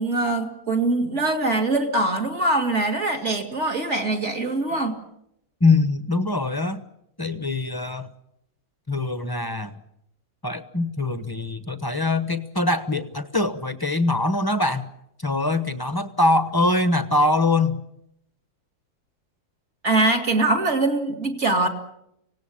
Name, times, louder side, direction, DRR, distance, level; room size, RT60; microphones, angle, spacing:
voice 1, 0.0-5.0 19.8-21.7, right 2 dB, 35° right, 2 dB, 2.9 m, -23 dB
voice 2, 5.6-6.8 7.2-8.1 8.9-9.7 10.4-14.9 15.2-17.8, left 2 dB, 20° left, 10 dB, 0.6 m, -23 dB
25.0 x 18.0 x 8.6 m, 0.80 s
omnidirectional pair, 2.1 m